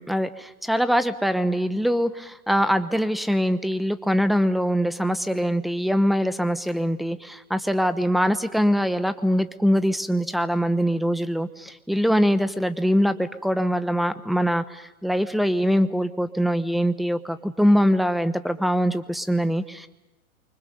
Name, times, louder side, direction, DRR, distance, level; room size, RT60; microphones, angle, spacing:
voice 1, 0.0-19.9, equal, ahead, 12 dB, 1.0 m, -23 dB
29.0 x 25.0 x 5.4 m, 1.1 s
hypercardioid pair, 120°, 43 cm